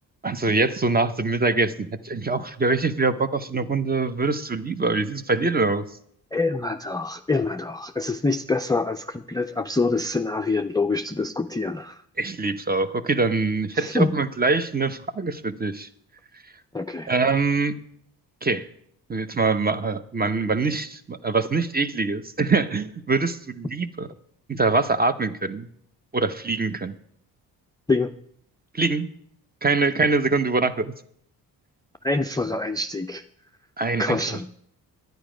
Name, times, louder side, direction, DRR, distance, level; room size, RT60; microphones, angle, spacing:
voice 1, 0.2-5.8 12.2-15.9 17.1-17.7 18.4-18.7 19.1-24.1 24.5-25.7 26.1-26.9 28.7-29.1 29.6-30.9 33.8-34.2, right 3 dB, 20° right, 12 dB, 0.8 m, -24 dB
voice 2, 6.3-12.0 13.7-14.1 16.7-17.1 27.9-28.1 32.0-33.2 34.0-34.5, left 3 dB, 10° left, 9 dB, 0.4 m, -25 dB
10.5 x 9.3 x 5.0 m, 0.66 s
cardioid pair, 65°, 41 cm